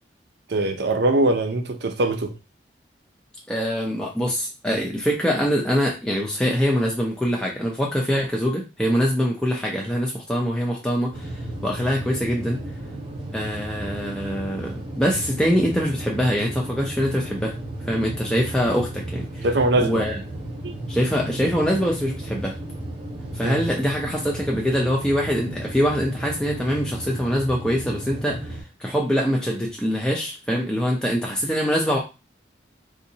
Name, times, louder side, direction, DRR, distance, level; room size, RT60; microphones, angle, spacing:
voice 1, 0.5-2.3 19.4-20.0 20.6-20.7 23.4-23.7, right 2 dB, 65° right, 0.6 m, -22 dB
voice 2, 3.5-12.6 13.3-17.5 17.8-19.4 19.8-20.2 20.9-22.6 23.3-32.0, equal, 5° left, 0.5 m, -24 dB
sound 1, 11.1-28.6, right 1 dB, 25° right, 0.8 m, -34 dB
3.9 x 2.7 x 2.7 m
head